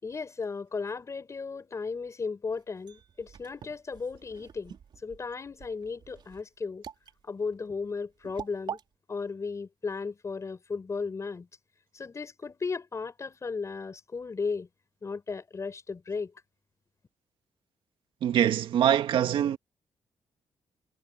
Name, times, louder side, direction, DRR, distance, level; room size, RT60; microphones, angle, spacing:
voice 1, 0.0-4.8 5.0-6.8 7.3-8.8 9.1-11.5 11.9-14.7 15.0-16.3, left 4 dB, 35° left, 5.2 m, -35 dB
sound 1, 2.5-8.8, right 8 dB, 65° right, 4.6 m, -45 dB
voice 2, 18.2-19.6, right 10 dB, 80° right, 2.0 m, -24 dB
cardioid pair, 95°, 9 cm